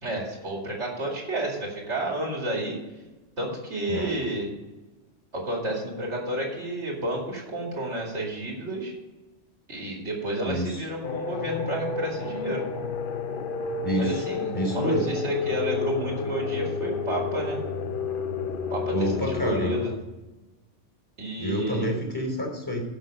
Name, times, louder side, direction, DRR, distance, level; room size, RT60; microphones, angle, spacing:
voice 1, 0.0-2.8 3.4-4.5 5.3-8.9 9.7-12.6 13.9-17.6 18.7-19.9 21.2-21.8, right 1 dB, 65° right, -1 dB, 2.7 m, -31 dB
voice 2, 10.4-10.8 13.8-14.2 14.5-15.1 18.9-19.7 21.4-22.8, right 1 dB, 15° left, 0 dB, 3.1 m, -28 dB
sound 1, 11.0-20.0, left 5 dB, 50° left, 0.8 m, -31 dB
12.0 x 6.1 x 5.4 m, 1.1 s
omnidirectional pair, 1.3 m